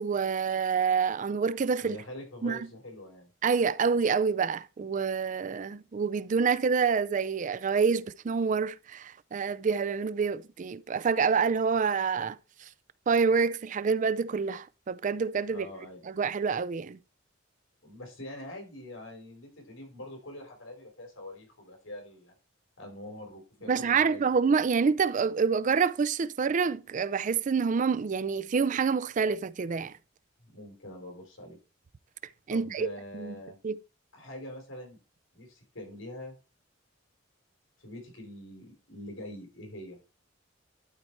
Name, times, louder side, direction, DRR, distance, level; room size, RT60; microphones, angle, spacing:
voice 1, 0.0-2.0 2.4-2.6 3.4-12.7 13.1-17.0 23.7-29.9 32.5-32.9 33.1-33.4 33.6-33.8, right 5 dB, 40° right, 0.4 m, -27 dB
voice 2, 1.8-3.3 15.5-16.0 17.8-22.3 22.8-24.2 30.4-31.6 32.5-33.6 34.1-35.0 35.3-36.3 37.8-40.0, left 1 dB, 90° left, 3.8 m, -44 dB
12.0 x 4.3 x 4.5 m
head